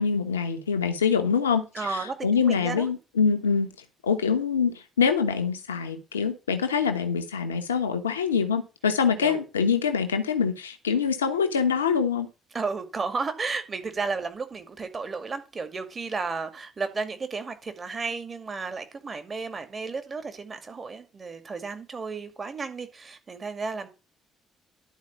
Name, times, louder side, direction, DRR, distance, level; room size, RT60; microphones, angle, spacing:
voice 1, 0.0-3.7 4.0-12.3, left 6 dB, 85° left, 1.1 m, -25 dB
voice 2, 1.7-2.9 9.2-9.4 12.5-23.9, right 4 dB, 35° right, 2.3 m, -33 dB
11.5 x 4.8 x 7.3 m
figure-of-eight pair, 45°, 0 cm